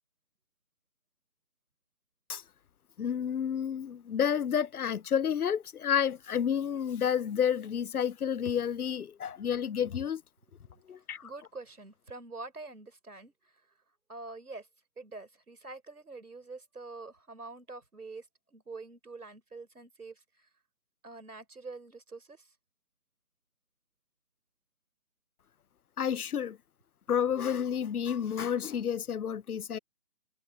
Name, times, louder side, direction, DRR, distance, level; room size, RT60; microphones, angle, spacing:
voice 1, 3.0-10.2 10.9-11.2 26.0-26.6 27.1-29.8, left 8 dB, 85° left, 0.6 m, -30 dB
voice 2, 11.2-13.5 14.1-14.7 15.0-20.2 21.0-22.5, right 3 dB, 85° right, 3.9 m, -46 dB
figure-of-eight pair, 150°, 43 cm